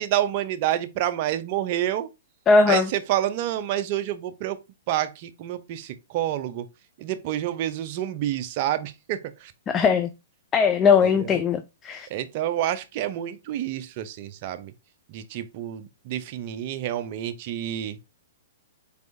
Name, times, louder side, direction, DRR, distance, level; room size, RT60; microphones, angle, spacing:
voice 1, 0.0-2.1 2.7-4.6 4.9-6.7 7.0-9.5 11.0-11.4 12.1-14.7 15.1-18.0, right 12 dB, 45° right, 0.5 m, -28 dB
voice 2, 2.5-2.9 9.7-10.1 10.5-12.1, left 5 dB, 20° left, 0.3 m, -19 dB
4.4 x 3.4 x 2.6 m
hypercardioid pair, 135°, 0 cm